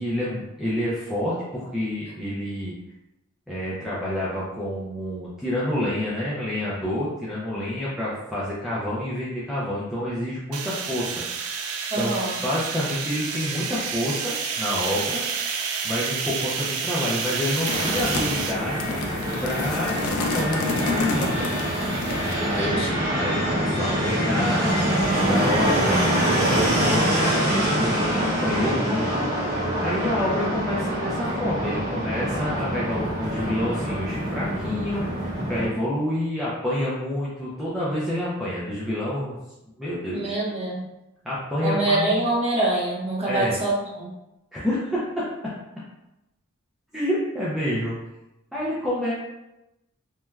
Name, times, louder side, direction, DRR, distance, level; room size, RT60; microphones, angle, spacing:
voice 1, 0.0-2.7 3.5-11.2 12.0-12.2 12.4-15.2 15.8-18.9 19.4-21.5 22.4-22.8 23.1-39.4 39.8-40.3 41.2-42.1 43.3-43.5 44.5-45.3 46.9-48.0 48.5-49.1, left 1 dB, ahead, -9 dB, 0.4 m, -28 dB
Cutter Trap, 10.5-18.5, right 6 dB, 85° right, 0.4 m, -29 dB
voice 2, 11.9-12.4 22.4-23.0 40.1-40.9 41.6-44.1, right 2 dB, 30° right, -5 dB, 0.7 m, -25 dB
sound 1, 17.4-22.5, left 3 dB, 85° left, 0.4 m, -30 dB
Fixed-wing aircraft airplane, 17.7-35.7, right 1 dB, 50° right, 0.9 m, -25 dB
3.1 x 2.2 x 2.3 m, 0.94 s
head